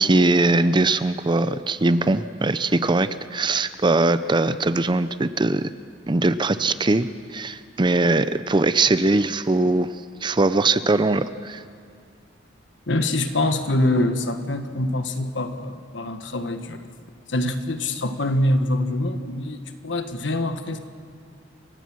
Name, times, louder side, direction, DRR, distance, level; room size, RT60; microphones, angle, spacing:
voice 1, 0.0-5.7 6.1-9.9 10.2-11.6, right 2 dB, 25° right, 13 dB, 0.6 m, -21 dB
voice 2, 12.9-16.9 17.3-20.8, left 1 dB, 70° left, 8 dB, 1.5 m, -24 dB
28.0 x 16.0 x 6.3 m, 2.4 s
head